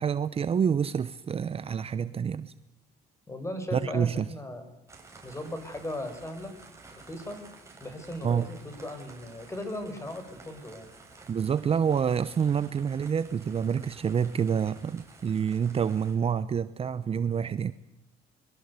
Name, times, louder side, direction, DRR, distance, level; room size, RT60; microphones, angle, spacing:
voice 1, 0.0-2.5 3.7-4.3 8.2-8.5 11.3-17.7, right 7 dB, 35° right, 14 dB, 0.8 m, -27 dB
voice 2, 3.3-4.6 5.2-6.5 6.9-7.4 7.8-10.9, left 1 dB, 15° left, 9 dB, 4.9 m, -37 dB
sound 1, 4.9-16.1, right 3 dB, 15° right, 6.1 m, -52 dB
22.5 x 22.5 x 8.2 m, 0.84 s
cardioid pair, 110°, 17 cm